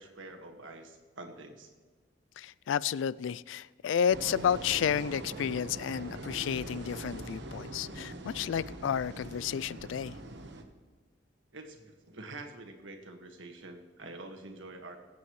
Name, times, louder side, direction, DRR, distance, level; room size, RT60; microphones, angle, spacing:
voice 1, 0.0-1.7 11.5-15.0, right 2 dB, 90° right, 3 dB, 1.7 m, -46 dB
voice 2, 2.4-10.2, left 8 dB, 80° left, 20 dB, 0.3 m, -31 dB
sound 1, 4.1-10.6, right 1 dB, 65° right, 1.2 m, -42 dB
23.0 x 8.4 x 3.2 m, 1.4 s
head